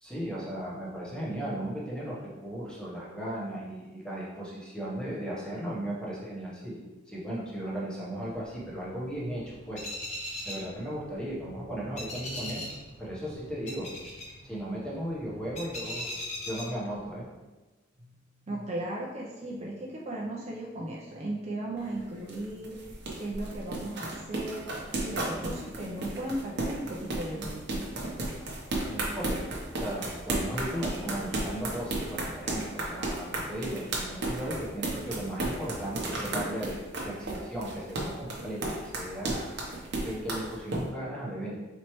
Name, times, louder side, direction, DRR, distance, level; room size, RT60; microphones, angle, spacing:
voice 1, 0.0-9.9 10.4-12.7 13.0-13.9 14.4-16.1 16.4-17.2 28.9-41.5, right 1 dB, 5° left, -6 dB, 0.9 m, -36 dB
sound 1, 8.2-17.2, left 1 dB, 35° left, 0.8 m, -41 dB
voice 2, 18.5-22.8 23.2-24.7 25.0-27.8, right 1 dB, 35° right, -3 dB, 0.5 m, -36 dB
sound 2, 21.8-40.8, right 2 dB, 60° right, 0.8 m, -33 dB
4.3 x 3.0 x 3.0 m, 1.2 s
head